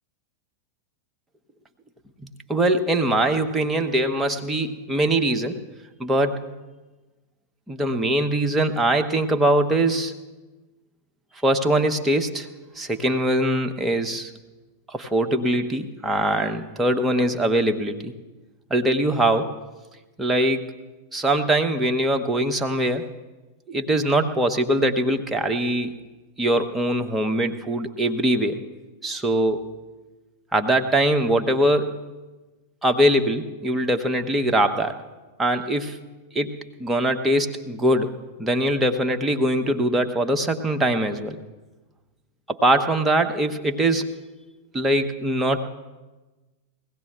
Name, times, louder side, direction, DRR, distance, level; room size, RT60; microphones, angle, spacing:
voice 1, 2.2-5.6 6.0-6.5 7.7-10.1 11.4-12.5 12.8-14.3 14.9-18.1 18.7-19.6 20.2-20.7 21.1-23.1 23.7-25.9 26.4-28.6 29.0-29.7 30.5-32.0 32.8-35.0 35.4-36.0 36.3-38.1 38.4-41.4 42.5-44.1 44.7-45.6, right 1 dB, 10° right, 4 dB, 1.1 m, -22 dB
22.0 x 16.5 x 2.2 m, 1.2 s
figure-of-eight pair, 90°, 0 cm